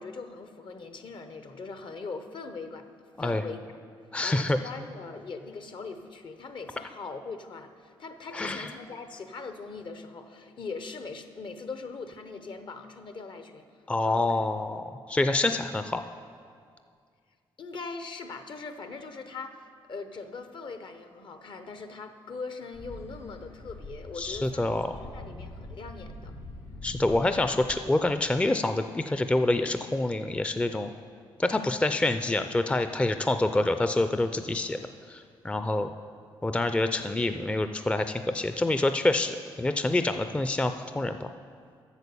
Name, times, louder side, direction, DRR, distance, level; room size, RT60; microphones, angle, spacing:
voice 1, 0.0-3.7 4.2-14.3 17.6-26.4, left 4 dB, 55° left, 8 dB, 0.8 m, -41 dB
voice 2, 4.1-4.6 8.3-8.7 13.9-16.0 24.2-25.0 26.8-30.9 31.4-34.8 35.1-35.9 36.4-41.3, left 2 dB, 10° left, 8 dB, 0.4 m, -27 dB
sound 1, 22.7-27.8, left 1 dB, 85° left, 2.6 m, -44 dB
8.3 x 6.6 x 6.9 m, 2.2 s
cardioid pair, 65°, 10 cm